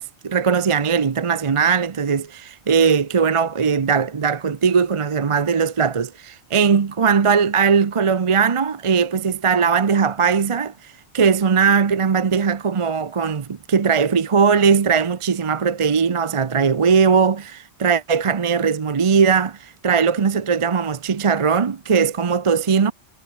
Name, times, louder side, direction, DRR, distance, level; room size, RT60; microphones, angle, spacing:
voice 1, 0.0-22.9, right 6 dB, 35° right, 0.6 m, -19 dB
omnidirectional pair, 1.1 m